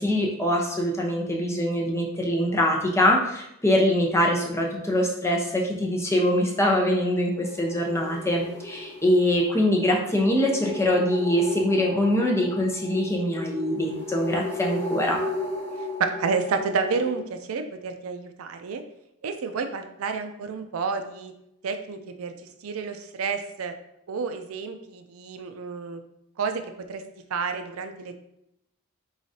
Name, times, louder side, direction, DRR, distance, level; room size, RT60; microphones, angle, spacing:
voice 1, 0.0-15.2, left 1 dB, 10° left, -1 dB, 0.8 m, -23 dB
sound 1, 7.3-17.2, left 1 dB, 30° left, 1.2 m, -35 dB
voice 2, 15.8-18.8 19.2-21.3 21.6-22.3 22.6-23.7 24.1-26.0 26.4-26.6 26.9-27.0 27.3-28.1, right 5 dB, 70° right, 7 dB, 0.4 m, -30 dB
4.8 x 3.9 x 2.7 m, 0.80 s
head